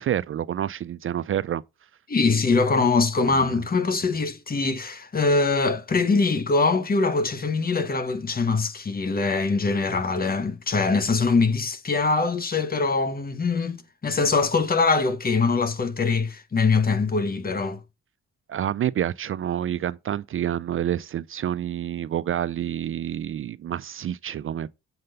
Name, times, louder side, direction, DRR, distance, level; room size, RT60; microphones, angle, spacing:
voice 1, 0.0-1.6 3.3-3.4 18.5-24.7, right 10 dB, 45° right, 0.4 m, -28 dB
voice 2, 2.1-17.8, left 4 dB, 30° left, 1.1 m, -23 dB
7.6 x 3.9 x 6.6 m
cardioid pair, 90°, 30 cm